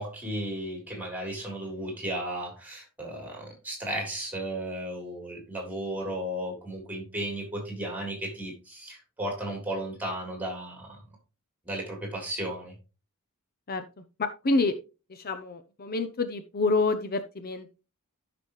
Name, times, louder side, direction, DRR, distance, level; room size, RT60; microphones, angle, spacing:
voice 1, 0.0-11.0 11.7-12.7, right 1 dB, 10° right, 2 dB, 3.7 m, -34 dB
voice 2, 13.7-14.7 15.1-17.7, left 3 dB, 45° left, 9 dB, 0.7 m, -28 dB
13.5 x 6.0 x 3.1 m, 0.30 s
head